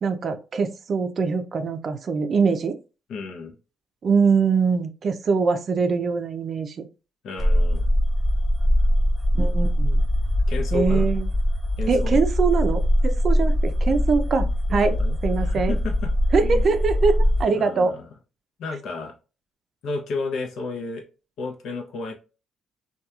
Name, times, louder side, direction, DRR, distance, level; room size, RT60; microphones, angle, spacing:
voice 1, 0.0-2.8 4.0-6.9 9.3-10.0 10.7-11.3 11.9-14.9 15.2-15.7 16.3-17.9, right 5 dB, 50° right, 8 dB, 0.4 m, -23 dB
voice 2, 3.1-3.6 7.2-7.8 10.5-11.1 11.8-12.2 14.7-16.1 16.4-16.6 17.5-18.1 18.6-19.1 19.8-21.0 21.4-22.1, left 3 dB, 75° left, 3 dB, 0.7 m, -32 dB
sound 1, 7.4-17.4, equal, 20° left, 1.1 m, -22 dB
2.8 x 2.3 x 2.3 m, 0.32 s
cardioid pair, 90°, 0 cm